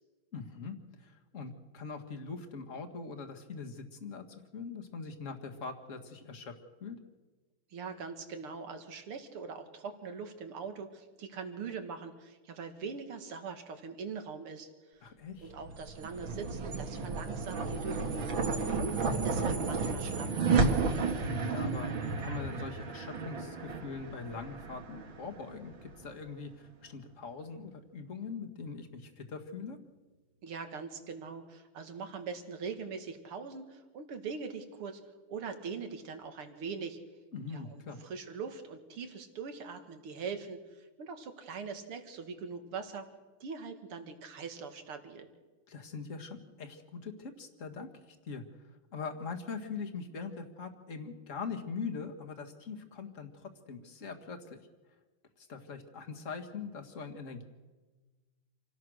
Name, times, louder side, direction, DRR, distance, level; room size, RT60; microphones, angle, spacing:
voice 1, 0.3-6.5 6.8-7.0 15.0-15.5 21.3-29.8 37.3-38.0 45.7-48.4 48.9-54.6 55.4-57.4, left 5 dB, 35° left, 4 dB, 2.1 m, -42 dB
voice 2, 7.7-15.1 15.4-20.3 30.4-35.0 35.3-37.0 37.5-43.1 43.4-45.3, right 5 dB, 85° right, 7 dB, 2.8 m, -42 dB
sound 1, 15.5-26.1, right 4 dB, 65° right, 2.6 m, -32 dB
27.5 x 17.5 x 6.4 m, 1.3 s
omnidirectional pair, 2.4 m